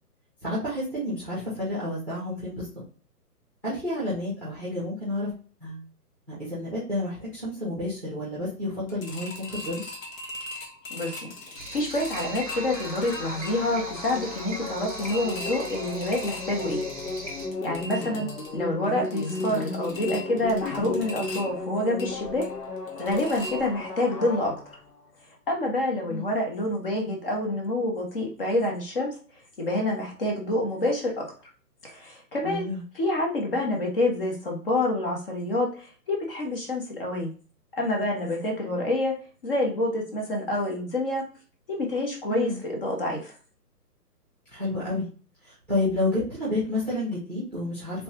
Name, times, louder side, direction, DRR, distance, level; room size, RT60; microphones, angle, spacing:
voice 1, 0.4-2.7 3.6-5.3 5.6-5.8 6.3-9.8 18.0-18.2 26.1-26.3 32.4-32.8 42.3-42.6 44.5-45.1 45.4-48.0, left 1 dB, 5° left, -8 dB, 0.8 m, -30 dB
sound 1, 8.9-24.1 24.4-24.5 24.9-25.0, left 1 dB, 55° left, 1.1 m, -41 dB
voice 2, 10.9-11.3 11.7-16.8 17.6-18.3 18.5-22.4 23.0-24.8 25.5-29.1 29.6-31.2 31.8-32.7 32.9-37.3 37.8-39.2 39.4-41.2 41.7-43.3, left 1 dB, 35° left, 0 dB, 1.1 m, -27 dB
sound 2, 11.5-17.5, right 1 dB, 25° right, 0.5 m, -40 dB
sound 3, 12.5-25.0, left 3 dB, 75° left, 1.2 m, -35 dB
3.4 x 3.3 x 2.9 m, 0.39 s
hypercardioid pair, 150°, 48 cm